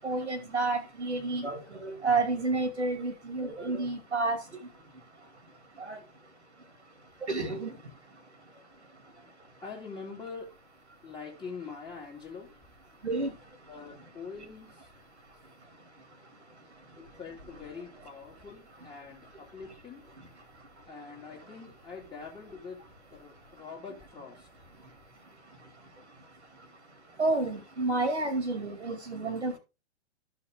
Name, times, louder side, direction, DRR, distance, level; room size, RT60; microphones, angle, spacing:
voice 1, 0.0-4.4 5.9-6.0 7.3-7.7 13.0-13.3 27.2-29.6, right 3 dB, 75° right, 8 dB, 2.4 m, -30 dB
voice 2, 9.6-10.5 11.0-12.5 13.7-14.9 17.2-20.0 20.9-22.8 23.1-24.5, left 5 dB, 15° left, -3 dB, 2.5 m, -44 dB
13.5 x 5.8 x 3.6 m, 0.27 s
figure-of-eight pair, 105°, 34 cm